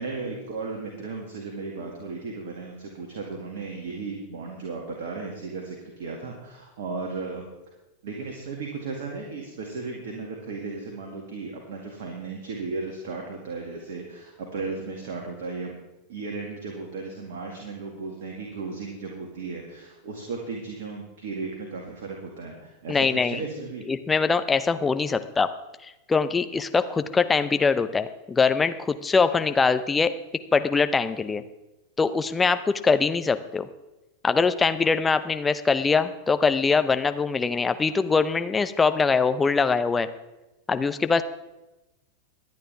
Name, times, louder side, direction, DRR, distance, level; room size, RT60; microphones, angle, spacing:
voice 1, 0.0-7.5 8.0-15.8 16.1-23.8, right 4 dB, 55° right, 1 dB, 2.1 m, -35 dB
voice 2, 22.9-23.4 23.9-25.5 26.1-30.1 30.5-31.4 32.0-33.7 34.2-40.1 40.7-41.2, left 4 dB, 15° left, 10 dB, 0.7 m, -23 dB
23.5 x 9.3 x 3.5 m, 1.0 s
figure-of-eight pair, 90°, 0 cm